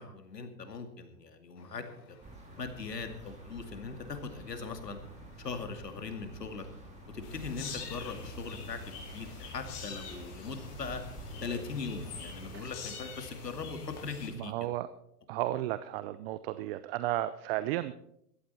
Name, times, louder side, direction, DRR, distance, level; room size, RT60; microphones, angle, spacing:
voice 1, 0.0-2.2 2.6-5.0 5.4-6.7 7.1-11.0 11.4-14.7, left 4 dB, 90° left, 7 dB, 2.5 m, -40 dB
Truck, 1.5-13.5, left 5 dB, 65° left, 3.6 m, -61 dB
sound 1, 2.2-12.6, right 1 dB, 15° right, 2.6 m, -49 dB
sound 2, 7.2-14.3, left 4 dB, 45° left, 4.6 m, -45 dB
voice 2, 14.4-14.9 15.3-17.9, right 15 dB, 40° right, 13 dB, 0.7 m, -33 dB
17.0 x 13.0 x 4.3 m, 0.74 s
hypercardioid pair, 115°, 47 cm